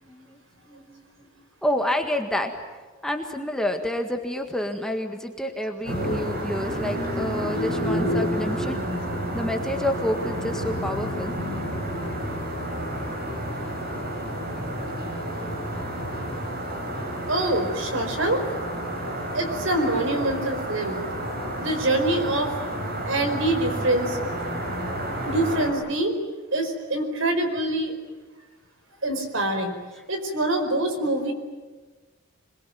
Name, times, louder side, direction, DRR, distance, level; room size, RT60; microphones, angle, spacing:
voice 1, 0.0-1.0 1.6-2.5 3.0-8.8 9.3-11.3, left 1 dB, 5° left, 3 dB, 1.7 m, -29 dB
sound 1, 5.8-25.7, equal, 45° right, 6.4 m, -30 dB
voice 2, 17.3-18.4 19.3-21.0 21.6-22.5 23.1-24.2 25.3-26.1 26.5-27.9 29.0-29.7 30.1-31.3, right 1 dB, 65° right, 6 dB, 4.9 m, -25 dB
26.5 x 21.5 x 9.3 m, 1.3 s
head